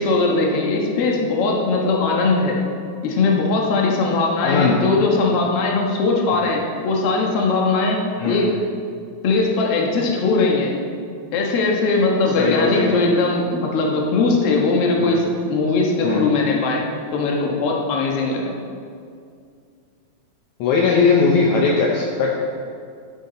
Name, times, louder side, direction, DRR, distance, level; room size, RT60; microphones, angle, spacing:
voice 1, 0.0-2.6 3.0-8.0 8.3-8.5 9.2-10.7 11.3-15.2 15.5-16.8 17.1-18.5, left 3 dB, 55° left, -1 dB, 1.9 m, -20 dB
voice 2, 4.4-4.8 6.3-6.5 8.2-8.4 12.4-13.0 15.0-15.2 16.0-16.3 20.6-22.4, left 4 dB, 75° left, -1 dB, 2.0 m, -19 dB
11.0 x 8.8 x 3.9 m, 2.3 s
omnidirectional pair, 3.7 m